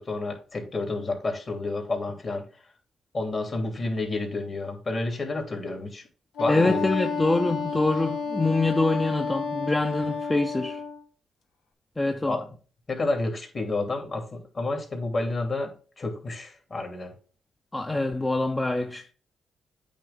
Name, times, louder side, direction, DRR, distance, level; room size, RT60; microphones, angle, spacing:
voice 1, 0.0-2.5 3.1-6.0 6.4-6.9 12.3-12.5 12.9-17.1, left 2 dB, 40° left, 2.9 m, -30 dB
Wind instrument woodwind instrument, 6.4-11.0, left 5 dB, 80° left, 1.3 m, -31 dB
voice 2, 6.5-10.8 12.0-12.4 17.7-19.1, left 2 dB, 20° left, 0.8 m, -25 dB
8.6 x 3.3 x 5.4 m
supercardioid pair, 60°, 0 cm